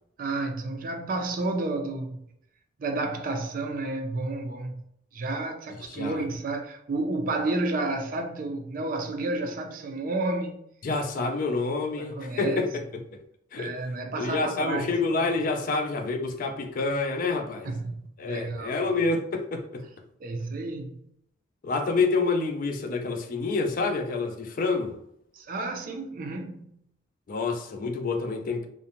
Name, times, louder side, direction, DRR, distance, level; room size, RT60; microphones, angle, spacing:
voice 1, 0.2-2.2 2.8-4.8 5.1-10.6 11.2-11.3 12.0-12.7 13.6-15.0 17.6-19.0 20.2-21.0 25.3-26.7, right 2 dB, 50° right, 0.4 m, -31 dB
voice 2, 5.9-6.2 10.8-12.7 12.9-13.0 13.5-13.7 14.2-17.7 18.2-19.9 21.6-25.0 27.3-28.7, left 3 dB, 45° left, 0.4 m, -28 dB
2.5 x 2.1 x 2.9 m
head